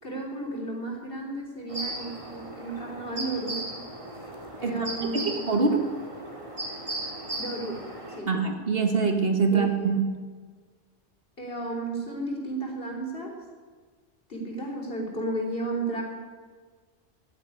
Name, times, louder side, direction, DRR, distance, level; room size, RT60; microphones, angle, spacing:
voice 1, 0.0-3.7 4.6-5.3 7.4-8.3 9.5-10.0 11.4-13.4 14.3-16.0, right 2 dB, 50° left, 1 dB, 3.7 m, -33 dB
sound 1, 1.7-8.2, right 1 dB, 25° right, 2.4 m, -37 dB
voice 2, 5.1-5.9 8.3-10.0, right 4 dB, 50° right, 5 dB, 1.8 m, -24 dB
14.5 x 9.9 x 9.9 m, 1.5 s
omnidirectional pair, 1.2 m